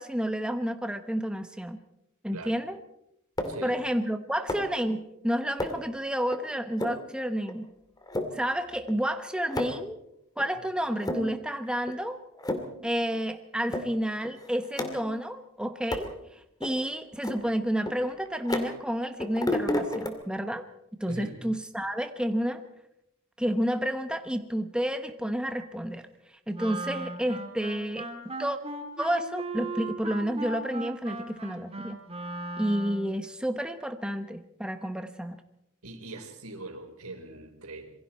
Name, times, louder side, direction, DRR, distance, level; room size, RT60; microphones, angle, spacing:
voice 1, 0.0-1.8 2.2-2.8 3.6-7.7 8.3-10.0 10.4-12.2 12.8-20.7 21.0-22.6 23.4-26.1 26.5-28.1 28.4-28.6 29.0-32.0 32.6-35.4, equal, 5° right, 7 dB, 1.1 m, -30 dB
sound 1, 3.4-3.7 4.5-4.8 5.6-5.9 6.3-6.4 6.8-7.0 7.5-7.6 8.0-8.3 8.9-9.0 9.2-9.9 10.4-10.5 10.9-11.5 11.9-12.0 12.3-12.8 13.1-13.2 13.7-13.9 14.2-15.2 15.9-16.1 16.6-16.7 17.2-18.9 19.2-20.1, left 1 dB, 20° left, 2.4 m, -32 dB
voice 2, 3.4-3.8 21.1-21.4 35.8-37.9, right 2 dB, 85° right, 5 dB, 4.1 m, -41 dB
Wind instrument woodwind instrument, 26.5-33.2, right 2 dB, 25° right, 2.5 m, -37 dB
27.0 x 23.0 x 4.3 m, 0.78 s
head